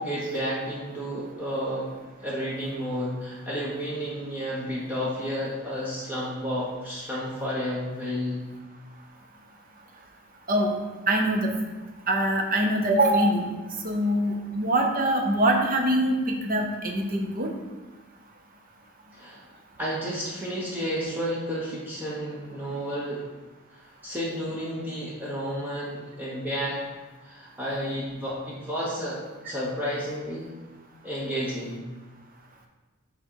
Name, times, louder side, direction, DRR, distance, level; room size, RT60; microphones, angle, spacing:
voice 1, 0.0-1.9 2.2-8.5 19.1-19.4 19.8-23.2 23.7-26.9 27.2-30.5 31.0-31.8, equal, 10° right, -6 dB, 1.0 m, -31 dB
voice 2, 11.1-11.5 12.1-13.5 13.8-17.5, right 1 dB, 40° right, 2 dB, 0.7 m, -23 dB
6.3 x 3.8 x 4.6 m, 1.2 s
head